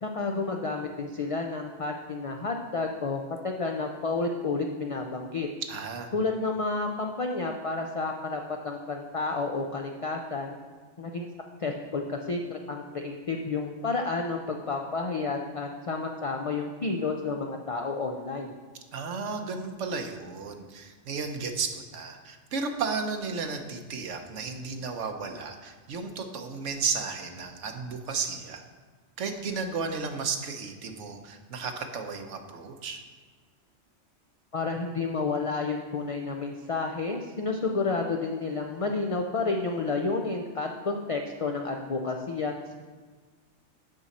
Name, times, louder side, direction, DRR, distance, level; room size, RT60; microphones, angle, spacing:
voice 1, 0.0-5.5 6.1-10.6 11.0-11.3 11.6-18.5 34.5-42.7, left 3 dB, 50° left, 2 dB, 0.4 m, -30 dB
voice 2, 5.7-6.1 18.9-28.6 29.2-33.0, right 5 dB, 85° right, 5 dB, 1.1 m, -33 dB
8.9 x 6.1 x 4.2 m, 1.5 s
omnidirectional pair, 1.2 m